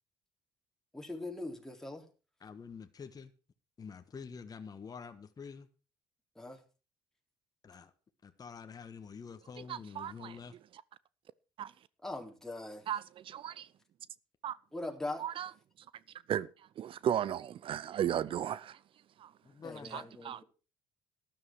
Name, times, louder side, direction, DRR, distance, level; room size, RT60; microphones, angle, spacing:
voice 1, 0.9-2.0 6.4-6.6 12.0-12.9 14.7-15.2 19.6-20.4, left 2 dB, 5° left, 3.9 m, -41 dB
voice 2, 2.4-3.3 3.8-5.7 7.6-7.9 8.2-10.5 19.4-20.1, left 6 dB, 35° left, 1.5 m, -47 dB
voice 3, 9.7-10.4 11.6-11.7 12.9-13.7 14.4-14.6 15.2-15.5 16.3-16.5 16.8-18.8 19.2-19.3 19.9-20.4, right 10 dB, 55° right, 0.6 m, -35 dB
13.0 x 11.0 x 4.8 m
hypercardioid pair, 60°, 11 cm